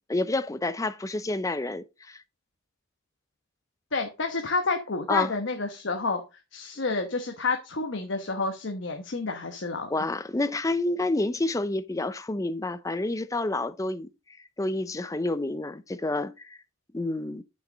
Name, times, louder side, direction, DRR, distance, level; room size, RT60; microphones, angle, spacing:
voice 1, 0.1-2.2 5.1-5.3 9.9-14.1 14.6-16.6 16.9-17.4, left 2 dB, 15° left, 0.5 m, -29 dB
voice 2, 3.9-6.2 6.5-9.9, left 3 dB, 60° left, 1.1 m, -29 dB
7.6 x 6.4 x 3.9 m
head